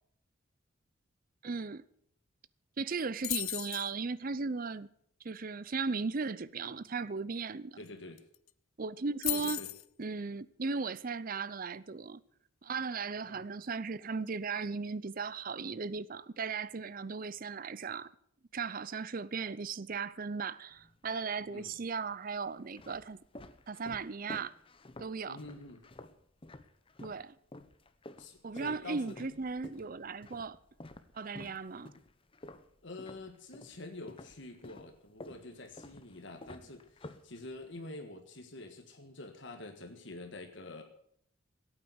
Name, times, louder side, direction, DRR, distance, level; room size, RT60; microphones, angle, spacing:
voice 1, 1.4-1.8 2.8-4.9 5.2-7.8 8.8-9.6 10.0-12.2 12.6-18.1 18.5-23.2 23.7-24.5 25.0-25.4 27.0-27.3 28.4-30.6 31.1-31.9, right 4 dB, 45° right, 0.6 m, -37 dB
sound 1, 3.2-3.9 7.9-8.0 8.2-8.5 9.2-9.9, left 19 dB, 90° left, 0.6 m, -35 dB
voice 2, 7.8-8.2 9.3-9.7 13.3-13.4 21.4-21.8 25.3-25.8 28.2-29.4 32.8-40.8, left 2 dB, 60° left, 1.7 m, -47 dB
sound 2, 20.7-21.4 22.1-27.2 27.5-33.8 34.1-37.8, left 1 dB, 25° left, 0.9 m, -51 dB
16.5 x 9.0 x 7.9 m
head